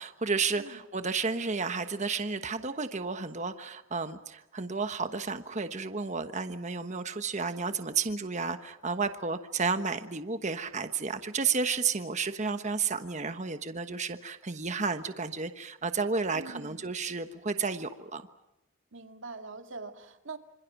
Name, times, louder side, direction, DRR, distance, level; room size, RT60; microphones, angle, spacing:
voice 1, 0.0-18.2, right 4 dB, 35° right, 9 dB, 1.2 m, -32 dB
voice 2, 16.3-16.9 18.9-20.4, right 3 dB, 60° right, 6 dB, 2.3 m, -43 dB
27.5 x 26.5 x 6.0 m, 0.97 s
head